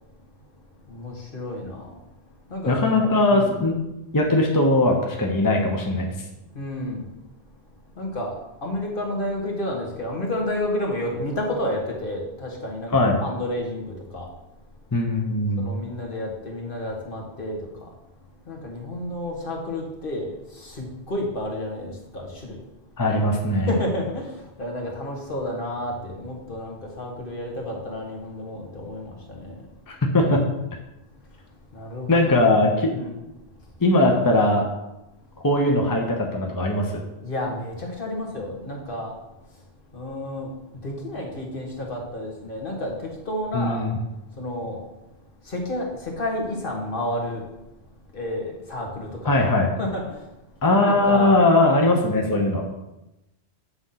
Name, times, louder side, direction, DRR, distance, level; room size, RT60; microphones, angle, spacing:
voice 1, 0.8-2.1 2.5-3.6 6.5-7.3 7.6-7.7 7.9-14.3 15.6-17.9 18.4-22.6 23.7-30.0 31.2-32.5 32.9-33.1 33.7-33.8 37.2-39.6 39.9-43.9 44.3-44.8 45.4-47.5 48.1-49.4 49.8-50.6 50.9-51.3, left 1 dB, 55° left, 0 dB, 1.6 m, -31 dB
voice 2, 2.7-3.8 4.1-6.1 12.9-13.2 14.9-15.7 23.0-23.7 29.9-30.4 32.1-32.9 33.8-34.6 35.4-37.0 43.5-43.9 49.2-49.7 50.6-52.6, left 2 dB, 20° left, 1 dB, 0.8 m, -20 dB
8.0 x 3.8 x 5.7 m, 0.95 s
omnidirectional pair, 1.1 m